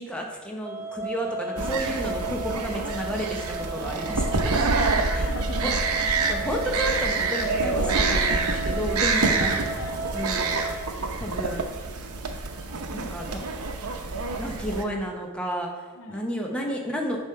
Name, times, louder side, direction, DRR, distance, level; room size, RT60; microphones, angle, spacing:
voice 1, 0.0-4.6 5.1-5.3 5.6-5.7 6.3-9.6 10.1-10.6 11.2-11.7 12.9-13.5 14.4-17.2, equal, 5° left, 0 dB, 1.0 m, -31 dB
sound 1, 0.6-10.9, right 3 dB, 10° right, 0.3 m, -35 dB
sound 2, 1.6-14.8, right 3 dB, 80° right, 0.8 m, -27 dB
voice 2, 4.9-6.1 9.4-9.5 9.8-10.2 10.9-11.1 16.0-16.3, left 2 dB, 65° left, 5 dB, 0.7 m, -39 dB
8.7 x 3.6 x 5.7 m, 1.4 s
head